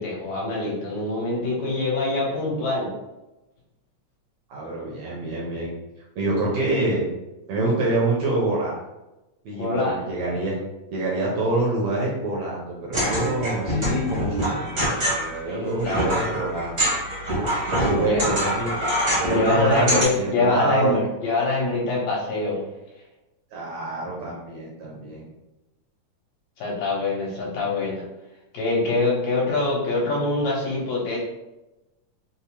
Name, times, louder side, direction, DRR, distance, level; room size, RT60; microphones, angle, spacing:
voice 1, 0.0-2.9 9.5-10.0 15.5-16.3 18.0-18.3 19.3-22.6 26.6-28.0 28.5-31.2, left 2 dB, 70° left, -4 dB, 2.0 m, -24 dB
voice 2, 4.5-5.7 6.2-7.0 7.5-8.7 9.4-10.5 10.9-16.9 17.7-18.7 19.2-21.0 23.5-25.2, right 2 dB, 75° right, -4 dB, 1.6 m, -26 dB
sound 1, 12.9-20.0, equal, 50° right, 0.8 m, -25 dB
5.0 x 2.0 x 2.8 m, 0.99 s
omnidirectional pair, 3.4 m